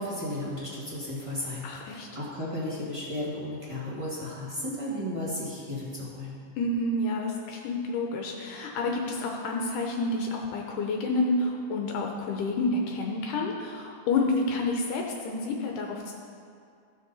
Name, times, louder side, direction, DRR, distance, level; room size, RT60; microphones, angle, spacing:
voice 1, 0.0-6.4, left 1 dB, 15° right, -7 dB, 1.1 m, -34 dB
voice 2, 1.6-2.1 6.6-16.1, left 2 dB, 75° left, 1 dB, 2.1 m, -29 dB
15.5 x 6.5 x 4.1 m, 2.3 s
omnidirectional pair, 4.1 m